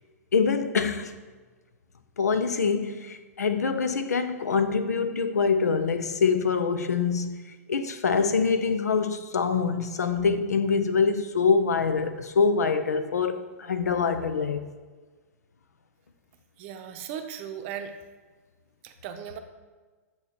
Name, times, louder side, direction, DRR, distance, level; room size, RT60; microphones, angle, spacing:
voice 1, 0.3-1.2 2.2-7.4 7.7-14.6, left 5 dB, 85° left, 0.5 m, -25 dB
voice 2, 16.6-17.9 18.8-19.4, right 8 dB, 50° right, 0.6 m, -37 dB
8.1 x 2.9 x 4.3 m
hypercardioid pair, 115°, 9 cm